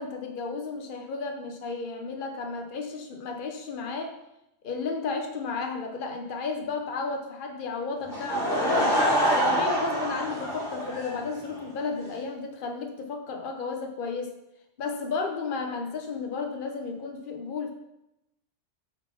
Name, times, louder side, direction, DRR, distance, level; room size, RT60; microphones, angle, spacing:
voice 1, 0.0-4.1 4.6-9.0 9.3-14.3 14.8-17.7, left 4 dB, 50° left, 3 dB, 1.0 m, -33 dB
Laughter / Crowd, 8.1-11.6, equal, 75° left, 2.8 m, -26 dB
9.3 x 4.1 x 5.8 m, 0.88 s
omnidirectional pair, 1.2 m